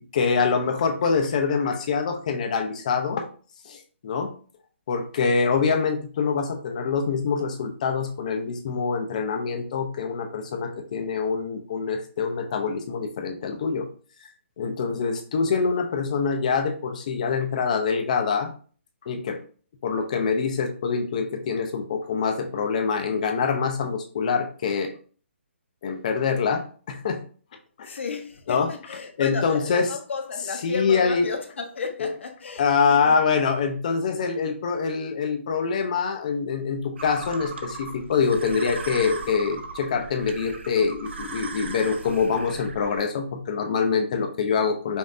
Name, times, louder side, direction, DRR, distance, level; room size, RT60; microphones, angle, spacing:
voice 1, 0.1-3.3 3.6-4.3 4.9-13.9 14.6-18.5 19.0-19.4 19.8-24.9 25.8-27.2 27.8-28.0 28.5-28.7 29.2-29.9 30.6-31.3 32.0-32.1 32.6-45.0, left 5 dB, 35° left, 0.6 m, -25 dB
voice 2, 27.8-33.2, left 5 dB, 65° left, 0.9 m, -33 dB
sound 1, 37.0-43.1, right 4 dB, 60° right, 0.6 m, -38 dB
5.2 x 2.6 x 2.6 m
hypercardioid pair, 170°, 7 cm